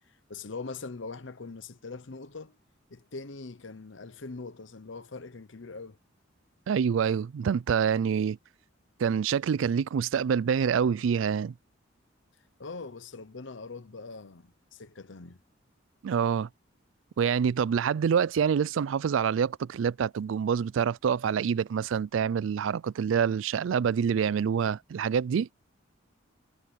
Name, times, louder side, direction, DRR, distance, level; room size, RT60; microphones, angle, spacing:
voice 1, 0.3-2.6 2.9-6.0 12.6-15.4, left 4 dB, 70° left, 0.9 m, -42 dB
voice 2, 6.7-8.4 9.0-11.5 16.0-16.5 17.2-25.5, right 7 dB, 75° right, 0.3 m, -26 dB
head